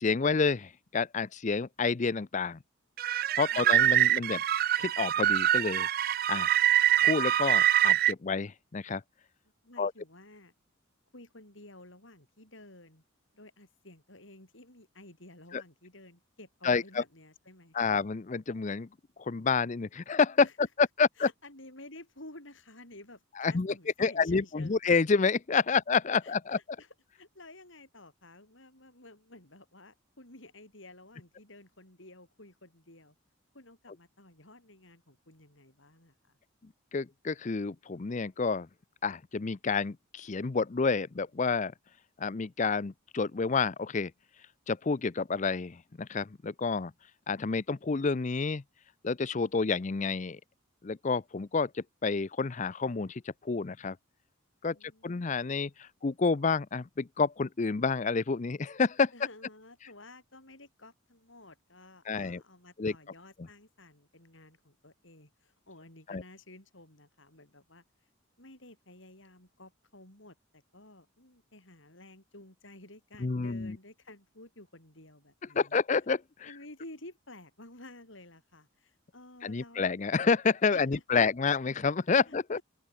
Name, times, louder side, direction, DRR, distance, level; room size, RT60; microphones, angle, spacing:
voice 1, 0.0-2.6 3.4-4.4 4.8-5.9 6.3-6.5 7.0-9.0 9.8-9.9 15.5-15.6 16.6-17.0 17.7-18.9 19.2-20.5 20.8-21.3 23.4-23.7 24.0-26.6 36.9-38.7 39.0-41.7 42.2-44.1 44.7-46.9 47.3-48.6 49.0-50.4 50.8-54.0 54.6-54.8 55.0-59.1 62.1-62.4 62.8-62.9 66.1-66.2 73.2-73.8 75.5-76.2 79.4-82.6, left 4 dB, 35° left, 0.5 m, -29 dB
sound 1, 3.0-8.1, right 12 dB, 45° right, 0.4 m, -25 dB
voice 2, 3.5-3.8 9.6-10.5 11.1-13.0 13.3-18.0 20.4-20.7 21.2-24.9 25.7-25.8 26.2-33.1 33.5-36.4 54.7-55.5 59.1-67.8 68.4-75.8 76.4-79.9 80.7-81.3 82.3-82.6, left 2 dB, 65° left, 7.7 m, -52 dB
open air
head